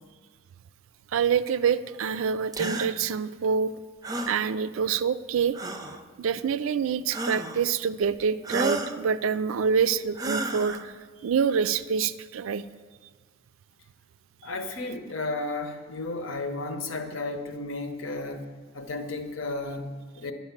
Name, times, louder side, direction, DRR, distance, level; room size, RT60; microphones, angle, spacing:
voice 1, 1.1-3.7 4.3-5.6 6.2-10.9 11.2-12.6, right 6 dB, 85° right, 14 dB, 0.4 m, -26 dB
sound 1, 2.5-2.9 4.0-4.4 5.5-6.0 7.1-7.6 8.4-9.0 10.2-10.8, right 2 dB, 20° right, 0.4 m, -31 dB
voice 2, 14.4-20.3, left 2 dB, 75° left, 6 dB, 0.9 m, -33 dB
11.0 x 4.5 x 7.2 m, 1.5 s
head